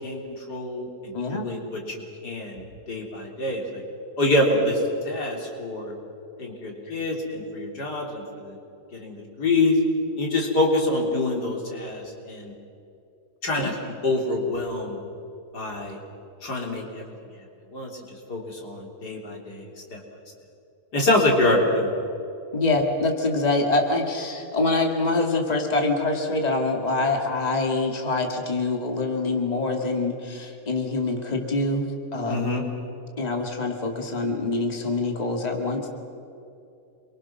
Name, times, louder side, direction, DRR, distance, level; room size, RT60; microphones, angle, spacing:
voice 1, 0.0-3.8 4.2-4.8 5.1-5.9 6.4-8.6 8.9-9.8 10.2-12.5 13.4-15.0 15.5-16.0 16.4-17.1 17.7-20.0 20.9-21.9 32.3-32.6, left 2 dB, 90° left, 0 dB, 4.1 m, -26 dB
voice 2, 1.1-1.5 13.6-13.7 22.5-32.5 33.2-35.9, left 2 dB, 25° left, 2 dB, 2.3 m, -25 dB
27.5 x 23.5 x 6.1 m, 2.7 s
omnidirectional pair, 1.7 m